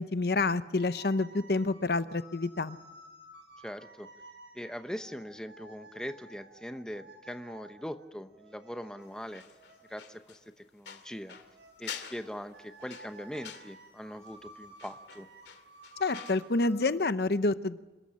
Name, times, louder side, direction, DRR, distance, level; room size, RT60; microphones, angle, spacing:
voice 1, 0.0-2.8 16.0-17.8, left 3 dB, 65° left, 13 dB, 0.8 m, -28 dB
sound 1, 0.7-10.3 11.1-16.9, right 2 dB, 85° right, 5.0 m, -54 dB
voice 2, 3.6-4.1 4.5-9.4 9.9-11.4 11.8-15.3, equal, 5° left, 8 dB, 0.9 m, -41 dB
sound 2, 9.3-16.5 16.7-16.9, left 8 dB, 85° left, 2.3 m, -47 dB
26.5 x 14.0 x 9.9 m, 1.2 s
head